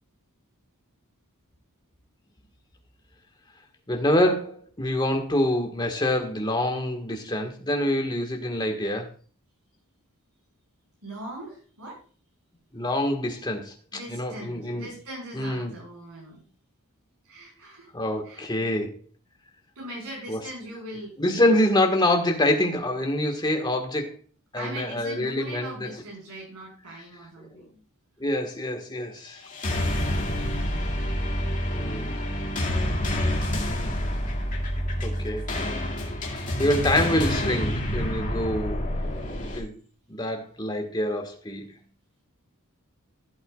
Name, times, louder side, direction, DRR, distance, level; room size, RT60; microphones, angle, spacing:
voice 1, 3.9-9.1 12.7-13.7 14.1-14.9 15.3-15.7 17.9-18.9 20.3-20.4 21.2-24.2 24.5-25.9 28.2-29.4 31.7-32.2 35.0-35.5 36.3-38.8 39.5-39.7 40.1-41.7, left 1 dB, 20° left, 1.6 m, -26 dB
voice 2, 11.0-12.0 13.9-16.4 17.2-17.9 18.2-18.7 19.8-22.1 24.6-27.8 30.3-30.9 36.5-36.8 38.9-39.4, right 1 dB, 80° right, 5.5 m, -41 dB
sound 1, 29.4-39.6, left 1 dB, 35° left, 2.3 m, -28 dB
15.5 x 8.1 x 2.4 m
head